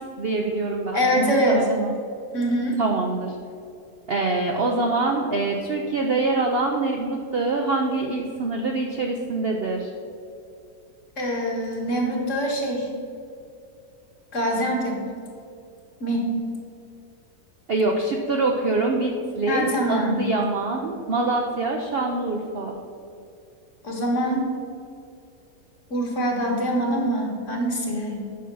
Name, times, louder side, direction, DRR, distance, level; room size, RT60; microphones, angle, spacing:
voice 1, 0.0-1.9 2.8-3.4 4.1-9.9 17.7-22.8, right 3 dB, 55° right, 2 dB, 0.7 m, -25 dB
voice 2, 0.9-1.7 2.3-2.8 11.2-12.9 14.3-15.0 16.0-16.3 19.5-20.3 23.8-24.4 25.9-28.2, equal, 50° left, 0 dB, 1.8 m, -24 dB
8.6 x 6.3 x 5.4 m, 2.5 s
omnidirectional pair, 1.7 m